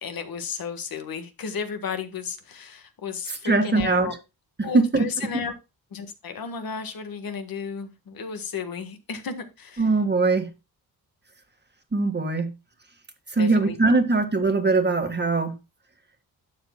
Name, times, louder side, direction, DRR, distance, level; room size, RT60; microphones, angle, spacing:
voice 1, 0.0-4.1 4.6-5.5 5.9-9.9 13.4-14.0, left 6 dB, 65° left, 1.5 m, -33 dB
voice 2, 3.4-4.2 4.7-5.1 9.8-10.5 11.9-12.5 13.3-15.5, right 3 dB, 25° right, 1.6 m, -21 dB
12.0 x 7.2 x 2.2 m
cardioid pair, 100°, 38 cm